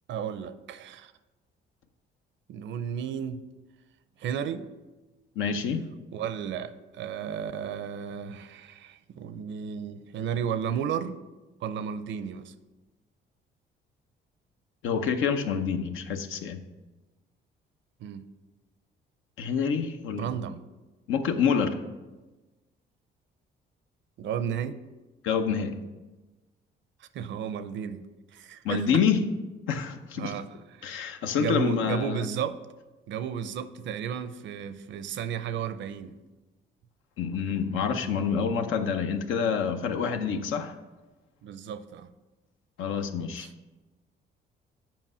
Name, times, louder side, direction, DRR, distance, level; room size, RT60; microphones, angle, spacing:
voice 1, 0.1-1.1 2.5-3.4 4.2-4.7 6.1-11.2 11.6-12.5 18.0-18.2 20.2-20.6 24.2-24.8 27.1-28.0 28.3-28.9 30.2-30.5 30.7-30.9 31.4-32.6 33.1-36.2 41.4-42.1 43.4-43.5, right 8 dB, 70° right, 0.5 m, -33 dB
voice 2, 5.4-5.8 14.8-16.6 19.4-20.3 21.1-21.8 25.2-25.7 28.6-29.2 29.7-30.3 30.8-32.3 37.2-40.8 42.8-43.5, left 6 dB, 90° left, 0.7 m, -27 dB
7.6 x 5.2 x 5.5 m
cardioid pair, 90°, 20 cm